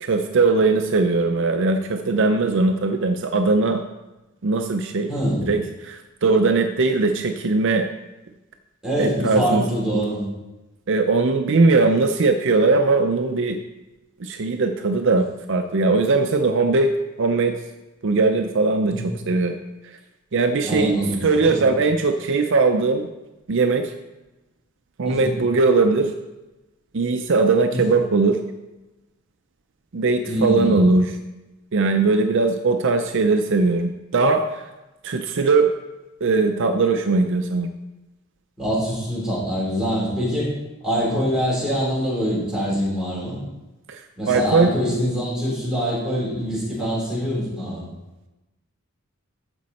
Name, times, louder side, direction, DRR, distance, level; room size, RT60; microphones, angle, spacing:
voice 1, 0.0-3.8 4.4-5.1 5.4-7.8 9.0-9.6 10.9-13.6 14.2-16.9 17.2-17.6 18.0-19.6 20.3-23.1 23.5-23.9 25.0-26.1 26.9-28.4 29.9-31.1 31.7-34.7 35.0-35.7 36.2-37.7 43.9-44.0 44.3-44.7, right 3 dB, 55° right, 6 dB, 0.5 m, -20 dB
voice 2, 5.1-5.5 8.8-10.2 18.9-19.1 20.6-21.7 25.0-25.3 27.7-27.8 30.2-30.8 38.6-40.5 40.8-43.4 44.2-47.8, equal, 5° right, -7 dB, 3.8 m, -24 dB
14.0 x 5.2 x 4.2 m, 1.0 s
head